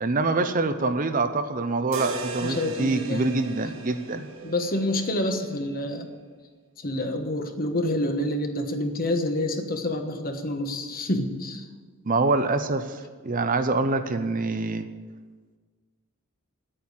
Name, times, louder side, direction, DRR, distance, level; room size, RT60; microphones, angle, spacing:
voice 1, 0.0-4.3 12.1-14.8, right 3 dB, 40° right, 9 dB, 0.7 m, -25 dB
sound 1, 1.9-6.0, right 3 dB, 65° right, 1.3 m, -38 dB
voice 2, 2.4-3.3 4.4-6.1 6.8-11.7, left 1 dB, 45° left, 5 dB, 1.3 m, -28 dB
9.1 x 8.8 x 9.7 m, 1.5 s
head